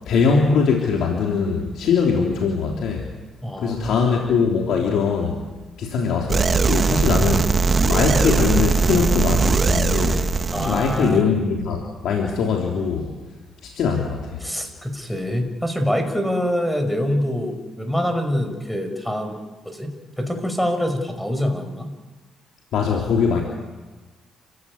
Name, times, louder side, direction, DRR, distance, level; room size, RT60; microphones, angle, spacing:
voice 1, 0.1-3.1 3.6-5.4 5.8-7.6 7.8-10.2 10.6-13.1 13.6-14.4 22.7-23.4, left 5 dB, 75° left, 1 dB, 3.4 m, -21 dB
voice 2, 3.4-4.1 10.5-11.3 14.4-19.4 19.7-21.9, equal, 5° left, 6 dB, 5.4 m, -25 dB
sound 1, 6.3-11.2, right 4 dB, 35° right, 1.2 m, -20 dB
29.0 x 16.0 x 9.7 m, 1.3 s
cardioid pair, 90°, 0 cm